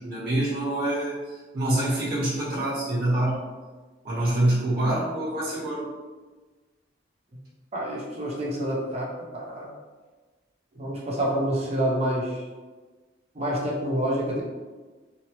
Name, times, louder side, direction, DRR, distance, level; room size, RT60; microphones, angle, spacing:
voice 1, 0.0-3.4 4.0-5.8, right 1 dB, 55° right, -8 dB, 1.1 m, -26 dB
voice 2, 7.7-9.7 10.8-12.4 13.4-14.4, right 1 dB, 35° right, -3 dB, 0.6 m, -27 dB
3.1 x 2.0 x 2.8 m, 1.3 s
head